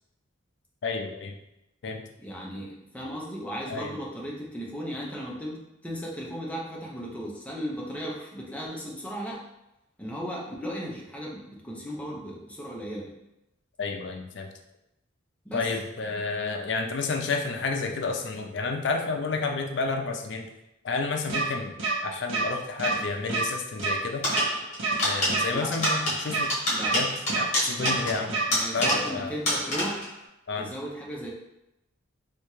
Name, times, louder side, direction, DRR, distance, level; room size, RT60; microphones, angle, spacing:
voice 1, 0.8-1.4 1.8-2.1 3.7-3.9 13.8-14.5 15.5-20.5 20.8-21.8 22.0-24.3 25.0-26.5 26.9-28.4 28.7-29.3 30.5-30.7, left 4 dB, 60° left, 4 dB, 0.4 m, -30 dB
voice 2, 2.2-9.4 10.0-13.1 15.4-15.7 25.5-25.7 26.7-26.9 27.8-30.0 30.6-31.3, equal, 5° left, -3 dB, 0.6 m, -36 dB
sound 1, 21.3-21.4 21.8-21.9 22.3-22.4 22.8-23.0 23.3-23.4 23.8-23.9 24.3-24.4 24.8-25.0 25.3-25.4 25.8-25.9 26.3-26.4 26.8-27.0 27.3-27.4 27.8-27.9 28.3-28.4 28.8-29.0, right 4 dB, 75° right, 0.7 m, -27 dB
sound 2, 24.2-29.2 29.5-30.1, left 1 dB, 35° left, 1.1 m, -28 dB
3.3 x 2.8 x 3.0 m, 0.90 s
head